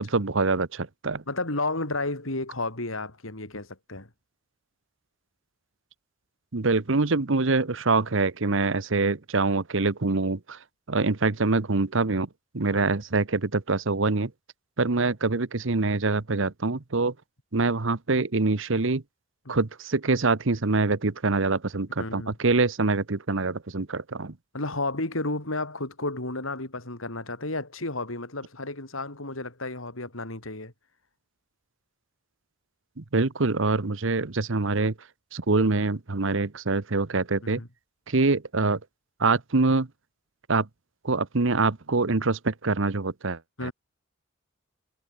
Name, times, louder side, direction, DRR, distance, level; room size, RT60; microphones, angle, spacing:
voice 1, 0.0-1.2 6.5-10.6 10.9-12.3 12.5-14.3 14.8-17.1 17.5-19.0 19.5-24.3 33.0-34.9 35.3-37.6 38.1-38.8 39.2-39.9 40.5-40.7 41.0-43.7, right 3 dB, 70° right, 1.1 m, -25 dB
voice 2, 1.3-4.1 12.7-12.9 19.5-19.6 22.0-22.3 24.5-30.7 37.4-37.7 43.6-43.7, left 2 dB, 85° left, 4.8 m, -32 dB
head